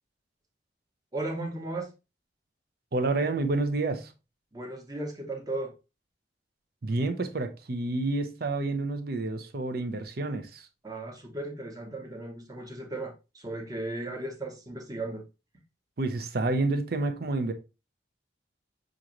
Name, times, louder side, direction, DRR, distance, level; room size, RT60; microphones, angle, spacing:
voice 1, 1.1-1.9 4.5-5.7 10.8-15.2, right 2 dB, 20° right, 1.0 m, -36 dB
voice 2, 2.9-4.1 6.8-10.7 16.0-17.5, right 2 dB, 55° right, 0.7 m, -29 dB
6.1 x 2.6 x 2.9 m
head